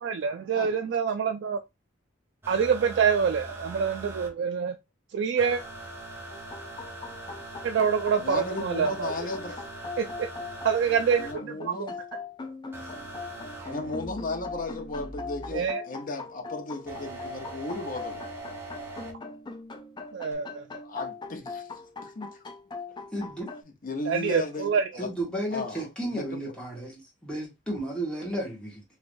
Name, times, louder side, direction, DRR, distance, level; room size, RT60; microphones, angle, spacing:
voice 1, 0.0-1.6 2.5-4.7 5.1-5.6 7.6-9.1 10.0-10.3 10.6-11.9 15.5-15.8 20.1-20.6 24.1-24.8, right 6 dB, 65° right, 0.3 m, -26 dB
sound 1, 2.4-4.3 5.4-11.3 12.7-15.7 16.9-19.1 20.3-20.4, right 2 dB, 15° right, 0.9 m, -42 dB
sound 2, 6.3-23.6, left 4 dB, 25° left, 0.4 m, -41 dB
voice 2, 8.2-9.6 11.2-12.0 13.7-18.3 20.8-21.7 22.0-22.4 23.8-25.1 25.5-26.5 28.3-28.4, left 2 dB, 45° left, 0.8 m, -35 dB
voice 3, 23.1-23.5 25.0-28.8, right 1 dB, 5° left, 1.4 m, -33 dB
3.2 x 3.0 x 2.5 m
head